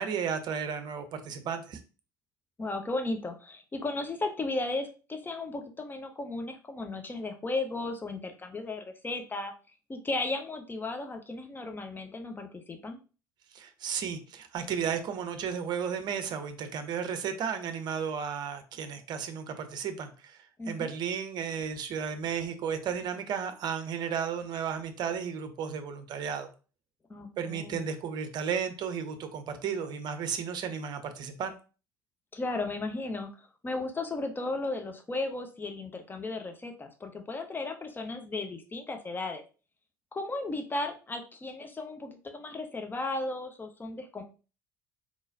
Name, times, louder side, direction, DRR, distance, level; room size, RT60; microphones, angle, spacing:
voice 1, 0.0-1.8 13.5-20.4 20.7-26.5 27.4-31.5, right 7 dB, 45° right, 0.7 m, -34 dB
voice 2, 2.6-9.5 9.9-13.0 20.6-20.9 27.1-27.9 32.3-33.3 33.6-39.4 40.1-44.2, left 2 dB, 20° left, 0.8 m, -35 dB
3.9 x 3.1 x 2.6 m
figure-of-eight pair, 60°, 10 cm